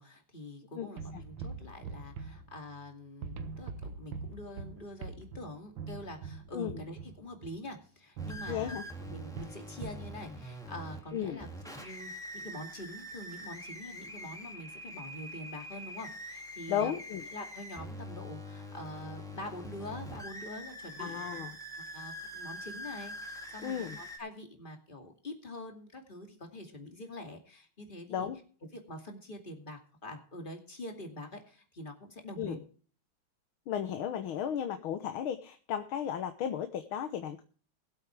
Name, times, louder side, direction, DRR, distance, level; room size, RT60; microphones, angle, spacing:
voice 1, 0.0-17.0 17.3-21.2 21.9-28.3 28.7-32.6, left 1 dB, 25° left, 4 dB, 2.5 m, -45 dB
sound 1, 1.0-2.9 3.2-7.7 8.2-10.1, right 5 dB, 70° right, 1.7 m, -43 dB
sound 2, 8.2-24.2, equal, ahead, 2.2 m, -44 dB
voice 2, 8.5-8.8 11.1-11.4 16.7-17.2 21.0-21.5 23.6-24.0 28.1-28.4 32.4-32.6 33.7-37.4, left 9 dB, 85° left, 8 dB, 1.9 m, -34 dB
21.5 x 8.1 x 3.3 m, 0.41 s
omnidirectional pair, 2.2 m